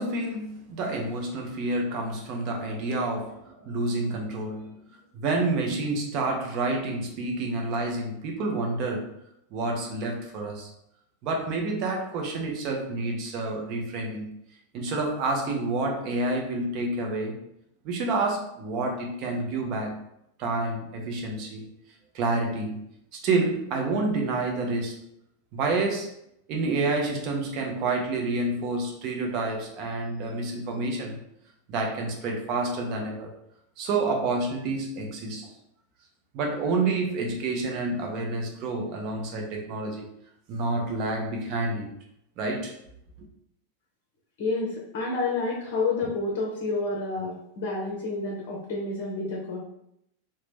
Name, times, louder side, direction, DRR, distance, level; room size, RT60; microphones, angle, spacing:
voice 1, 0.0-4.7 5.1-9.1 9.5-10.7 11.2-14.3 14.7-17.4 17.8-20.0 20.4-21.7 22.1-22.8 23.1-24.9 25.5-26.1 26.5-31.2 31.7-33.3 33.8-35.5 36.3-40.1 40.5-41.9 42.4-42.7, right 2 dB, 40° right, 1 dB, 0.7 m, -28 dB
voice 2, 44.4-49.6, left 3 dB, 45° left, -2 dB, 0.6 m, -29 dB
2.9 x 2.2 x 3.3 m, 0.77 s
figure-of-eight pair, 90°, 0 cm